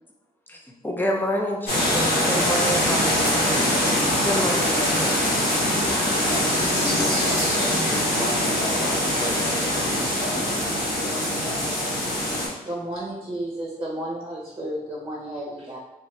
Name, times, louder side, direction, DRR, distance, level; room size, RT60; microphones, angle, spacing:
voice 1, 0.5-3.7 4.2-5.3, equal, 10° left, 0 dB, 0.6 m, -28 dB
sound 1, 1.7-12.5, left 1 dB, 90° left, 1.1 m, -23 dB
voice 2, 6.2-11.6, left 1 dB, 60° left, -9 dB, 1.0 m, -34 dB
voice 3, 12.6-15.8, right 1 dB, 25° right, -5 dB, 0.9 m, -32 dB
2.5 x 2.5 x 3.2 m, 0.96 s
cardioid pair, 65°, 16 cm